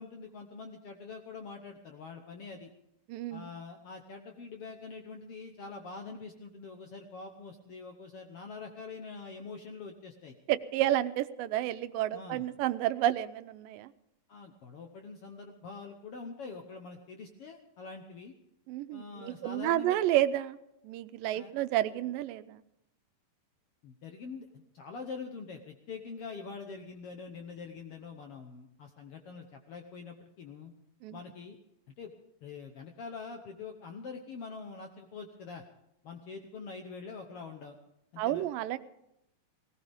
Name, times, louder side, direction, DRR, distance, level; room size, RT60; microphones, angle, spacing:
voice 1, 0.0-2.7 3.3-10.3 12.1-12.4 14.3-18.3 18.9-20.0 21.3-21.5 23.8-30.7 31.1-31.6 32.0-32.1 32.4-35.6 36.0-37.8 38.1-38.5, left 4 dB, 70° left, 4 dB, 1.4 m, -44 dB
voice 2, 3.1-3.5 10.5-13.9 18.7-20.6 20.8-22.6 31.0-31.2 38.2-38.8, right 13 dB, 90° right, 13 dB, 2.4 m, -30 dB
18.0 x 18.0 x 3.5 m, 0.81 s
omnidirectional pair, 3.9 m